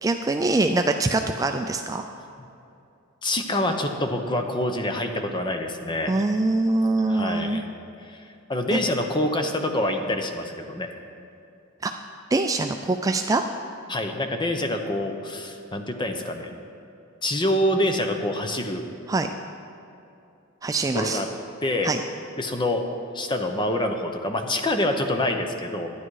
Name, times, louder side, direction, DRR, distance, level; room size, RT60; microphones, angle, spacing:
voice 1, 0.0-2.0 6.1-7.6 8.7-8.8 11.8-11.9 12.3-13.4 19.1-19.3 20.6-21.2 21.8-22.0, right 2 dB, 15° right, 5 dB, 0.3 m, -23 dB
voice 2, 3.2-6.2 7.1-7.7 8.1-8.2 8.5-10.9 13.9-16.5 17.2-18.9 20.9-21.3 21.6-21.9 22.4-22.8 23.1-25.9, left 1 dB, 20° left, 5 dB, 0.8 m, -26 dB
12.5 x 9.9 x 4.8 m, 2.7 s
head